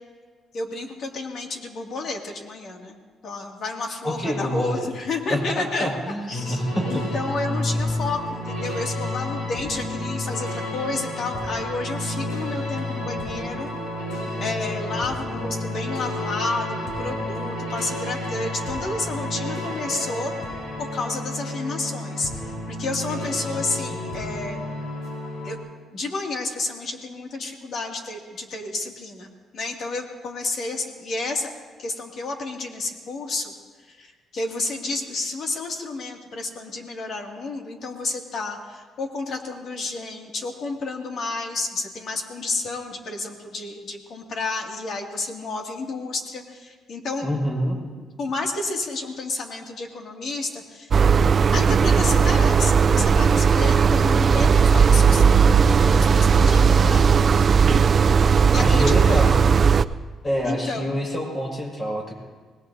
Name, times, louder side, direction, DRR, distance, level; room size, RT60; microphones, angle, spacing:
voice 1, 0.5-3.0 3.2-5.9 6.3-6.6 6.9-13.7 14.4-20.3 20.8-24.6 25.4-25.6 25.9-29.3 29.5-31.5 31.8-33.5 33.9-47.3 48.2-50.9 51.5-57.4 58.5-59.2 60.4-60.9, left 3 dB, 65° left, 1 dB, 2.5 m, -31 dB
voice 2, 4.0-4.9 5.3-7.0 47.2-47.8 58.6-59.6 60.2-62.1, equal, 30° left, 0 dB, 5.8 m, -27 dB
sound 1, 6.3-25.6, left 1 dB, 80° left, 5.9 m, -30 dB
sound 2, 50.9-59.8, right 6 dB, 45° right, 0.4 m, -17 dB
25.5 x 19.5 x 2.8 m, 1.5 s
cardioid pair, 90°, 0 cm